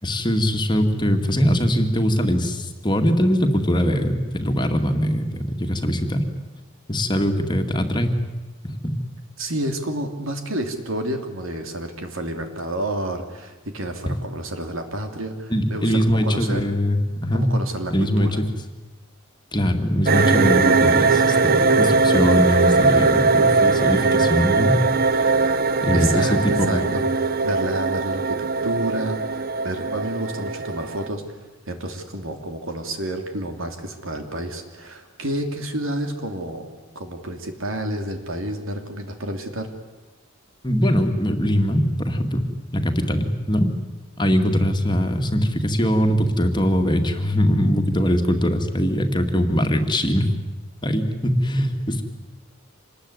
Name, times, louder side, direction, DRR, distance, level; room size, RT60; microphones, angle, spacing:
voice 1, 0.0-6.2 6.9-8.1 8.6-8.9 14.0-14.1 15.5-17.5 17.9-18.3 19.5-24.8 25.1-25.3 25.8-26.9 40.6-42.4 42.7-43.7 44.2-50.3 50.8-52.0, equal, 20° left, 4 dB, 2.2 m, -21 dB
voice 2, 9.4-16.7 17.3-18.4 25.9-26.4 26.7-36.7 36.9-39.7, right 1 dB, 65° right, 6 dB, 3.1 m, -30 dB
sound 1, 20.1-31.1, right 4 dB, 45° right, 0.8 m, -20 dB
26.5 x 20.5 x 9.7 m, 1.1 s
head